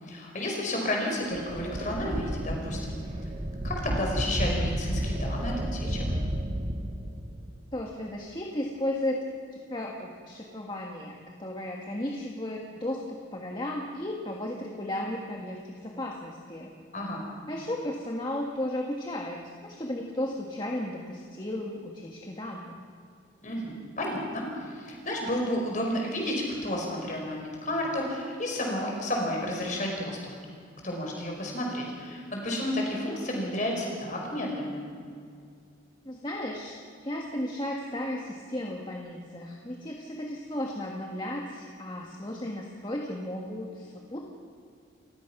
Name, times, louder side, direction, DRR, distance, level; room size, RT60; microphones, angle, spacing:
voice 1, 0.0-3.0 3.6-6.0 16.9-17.2 23.4-30.2 30.8-34.8, left 1 dB, 40° left, 0 dB, 5.1 m, -31 dB
sound 1, 1.3-7.5, equal, 35° right, 1.3 m, -32 dB
voice 2, 7.7-9.2 9.5-16.7 17.5-22.7 36.0-36.8 37.0-44.2, left 1 dB, 25° left, 0 dB, 1.6 m, -34 dB
29.0 x 16.0 x 6.0 m, 2.3 s
head